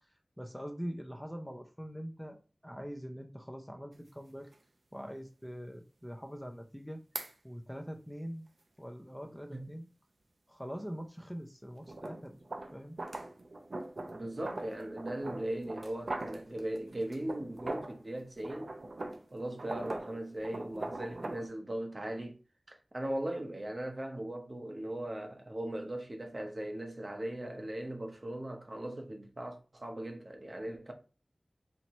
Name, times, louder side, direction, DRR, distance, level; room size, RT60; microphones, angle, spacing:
voice 1, 0.4-4.5 4.9-7.0 7.4-8.5 8.8-9.9 10.5-12.4 12.7-13.0, equal, ahead, 0.6 m, -43 dB
sound 1, 3.9-4.0 4.5-4.6 7.1-7.3 11.8-18.0 18.4-21.5, right 2 dB, 75° right, 0.6 m, -42 dB
voice 2, 14.1-18.7 19.3-22.4 22.7-30.9, right 1 dB, 45° right, 0.8 m, -39 dB
4.4 x 2.8 x 3.0 m
wide cardioid pair, 60°, 0 cm